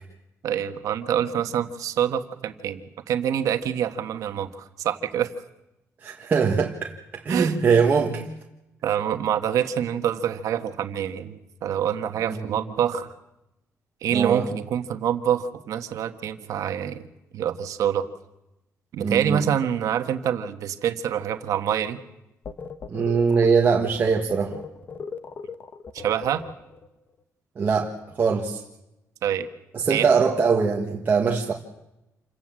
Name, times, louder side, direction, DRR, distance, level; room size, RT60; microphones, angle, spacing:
voice 1, 0.4-5.3 7.3-7.5 8.1-8.3 8.8-13.1 14.0-17.0 17.3-18.0 18.9-22.0 25.9-26.4 29.2-29.5 29.9-30.1, right 9 dB, 75° right, 8 dB, 1.4 m, -26 dB
voice 2, 6.0-6.9 7.2-8.3 12.2-12.6 14.1-14.4 19.0-19.4 22.9-24.6 27.6-28.6 29.7-31.5, right 5 dB, 30° right, -1 dB, 1.6 m, -22 dB
sound 1, 22.4-26.9, left 5 dB, 35° left, 1.1 m, -38 dB
27.5 x 17.5 x 7.6 m, 0.90 s
cardioid pair, 165°, 6 cm